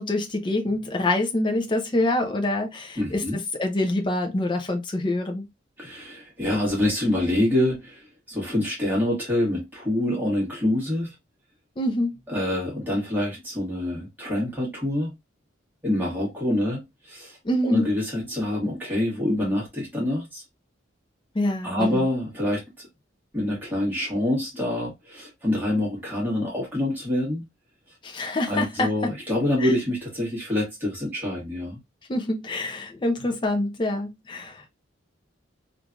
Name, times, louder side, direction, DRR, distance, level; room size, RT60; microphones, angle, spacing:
voice 1, 0.0-3.2 3.6-5.5 11.8-12.1 17.4-17.9 21.3-22.1 28.0-28.9 29.6-29.7 32.1-34.7, left 1 dB, 25° left, 0.5 m, -26 dB
voice 2, 3.0-3.4 5.8-11.1 12.3-15.1 15.8-17.4 17.6-20.4 21.6-22.9 23.3-27.4 28.5-31.8, left 1 dB, 10° right, 1.4 m, -26 dB
3.2 x 2.5 x 2.3 m
head